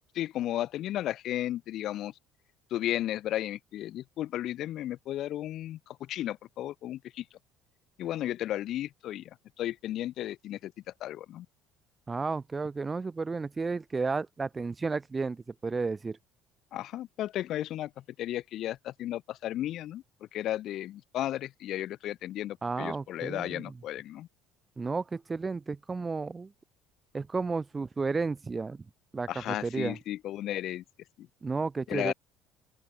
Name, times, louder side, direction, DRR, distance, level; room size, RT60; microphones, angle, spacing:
voice 1, 0.1-2.1 2.7-7.2 8.0-9.3 9.6-10.7 11.0-11.5 16.7-17.9 18.2-20.0 20.3-24.3 29.3-30.8 31.2-31.3 31.9-32.1, left 13 dB, 55° left, 2.8 m, -34 dB
voice 2, 12.1-16.2 22.6-23.6 24.8-26.5 27.1-28.8 29.1-30.0 31.4-32.1, right 4 dB, 25° right, 1.8 m, -32 dB
open air
figure-of-eight pair, 60°, 0 cm